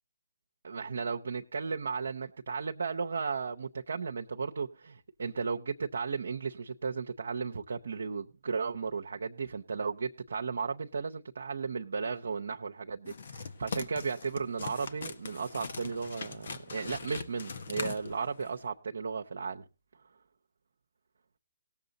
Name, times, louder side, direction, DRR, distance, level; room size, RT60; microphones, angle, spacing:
voice 1, 0.6-19.6, right 5 dB, 75° right, 0.7 m, -35 dB
sound 1, 13.1-18.6, left 5 dB, 65° left, 1.4 m, -41 dB
18.0 x 7.2 x 4.0 m
hypercardioid pair, 150°, 0 cm